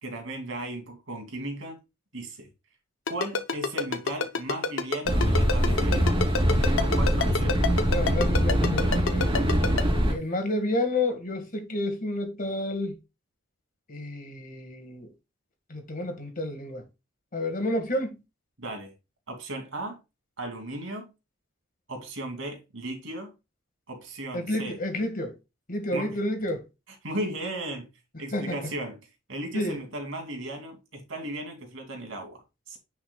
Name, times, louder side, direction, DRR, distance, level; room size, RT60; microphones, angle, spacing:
voice 1, 0.0-1.8 2.1-2.5 3.1-7.9 18.6-18.9 19.3-20.0 20.4-21.1 21.9-23.3 23.9-24.8 25.9-26.2 27.0-27.9 28.2-29.0 29.3-32.8, right 1 dB, 80° right, 2.7 m, -36 dB
Ringtone, 3.1-9.8, left 4 dB, 75° left, 0.8 m, -26 dB
sound 1, 5.1-10.1, equal, 25° right, 3.0 m, -23 dB
voice 2, 7.9-9.3 10.1-13.0 13.9-15.1 15.7-16.8 17.3-18.2 24.3-25.3 25.7-26.6 28.3-28.7 29.5-29.8, left 1 dB, 45° left, 1.9 m, -30 dB
9.7 x 5.8 x 2.4 m
head